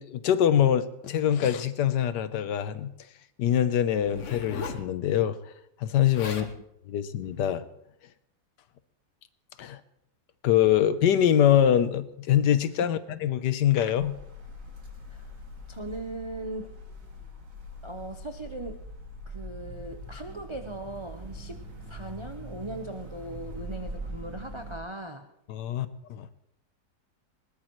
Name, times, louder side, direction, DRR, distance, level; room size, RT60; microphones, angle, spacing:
voice 1, 0.0-2.9 3.4-5.4 5.8-6.5 6.9-7.6 9.6-9.8 10.4-14.1 25.5-26.3, left 10 dB, 75° left, 13 dB, 1.4 m, -24 dB
Zipper (clothing), 4.0-4.9 5.8-5.9 6.1-6.5 7.2-7.5, left 5 dB, 50° left, 1.2 m, -38 dB
sound 1, 14.0-24.8, equal, 75° right, 2.8 m, -42 dB
voice 2, 15.7-16.8 17.8-18.9 19.3-21.6 21.9-25.3, right 2 dB, 45° right, 5 dB, 0.3 m, -39 dB
20.5 x 19.0 x 3.1 m, 0.79 s
omnidirectional pair, 1.9 m